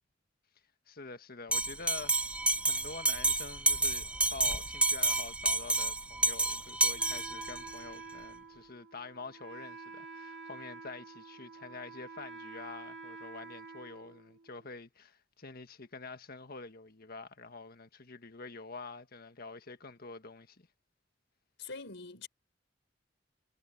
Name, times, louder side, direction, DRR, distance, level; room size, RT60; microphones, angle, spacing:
voice 1, 0.9-2.2 2.6-20.7, left 4 dB, 55° left, 1.6 m, -47 dB
Bell, 1.5-7.7, right 2 dB, 5° right, 0.6 m, -30 dB
Wind instrument woodwind instrument, 7.0-14.7, right 4 dB, 70° right, 2.1 m, -48 dB
voice 2, 21.6-22.3, left 4 dB, 70° left, 5.3 m, -43 dB
head